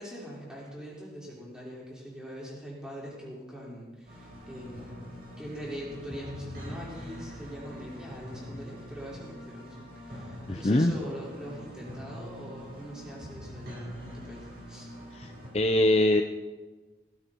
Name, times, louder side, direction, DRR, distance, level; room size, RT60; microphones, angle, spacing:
voice 1, 0.0-5.0 5.4-14.9, equal, 5° right, -7 dB, 5.6 m, -42 dB
sound 1, 4.1-15.5, equal, 55° right, 6.2 m, -44 dB
voice 2, 10.5-10.9 15.1-16.2, left 1 dB, 35° left, 5 dB, 0.7 m, -23 dB
17.5 x 17.0 x 4.7 m, 1.2 s
head